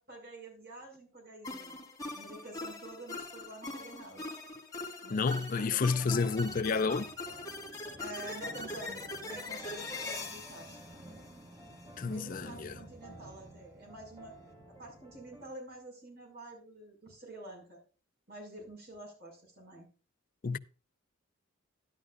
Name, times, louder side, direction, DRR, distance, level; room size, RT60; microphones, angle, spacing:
voice 1, 0.0-1.8 2.1-4.3 5.0-6.2 7.5-7.6 8.0-10.8 12.0-14.3 14.7-17.8 18.3-19.9, right 1 dB, 50° right, 5.9 m, -48 dB
sound 1, 1.4-11.8, left 2 dB, 15° left, 1.9 m, -42 dB
voice 2, 5.1-7.1 12.0-12.7 20.4-20.6, left 4 dB, 40° left, 0.5 m, -30 dB
sound 2, 6.0-15.5, right 1 dB, 25° right, 2.2 m, -52 dB
12.5 x 11.5 x 2.5 m
head